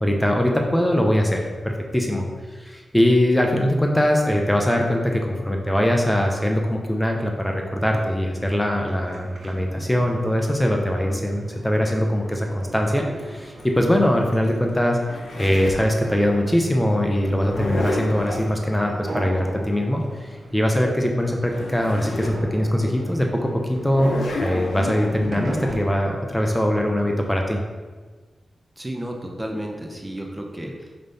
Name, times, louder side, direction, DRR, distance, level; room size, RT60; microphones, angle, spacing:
voice 1, 0.0-15.0 15.4-27.6, equal, 10° left, 2 dB, 1.0 m, -22 dB
sound 1, 7.8-26.0, right 2 dB, 70° right, 0.9 m, -40 dB
Zipper (clothing), 13.2-15.9 17.2-18.5 21.1-21.2 21.4-22.4 22.9-23.0 23.8-25.8, left 2 dB, 75° left, 1.1 m, -30 dB
voice 2, 28.8-31.0, right 1 dB, 20° right, 1 dB, 1.0 m, -32 dB
5.5 x 5.1 x 4.1 m, 1.4 s
cardioid pair, 45°, 0 cm